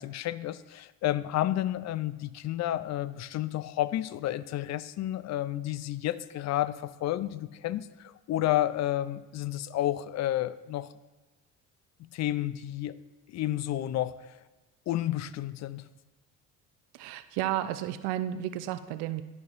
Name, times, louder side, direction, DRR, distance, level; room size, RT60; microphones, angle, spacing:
voice 1, 0.0-10.9 12.0-13.0 13.3-14.3 14.9-15.8, left 13 dB, 45° left, 16 dB, 0.4 m, -31 dB
voice 2, 16.9-19.2, right 12 dB, 70° right, 12 dB, 0.6 m, -32 dB
11.5 x 5.8 x 2.6 m, 1.1 s
hypercardioid pair, 65°, 41 cm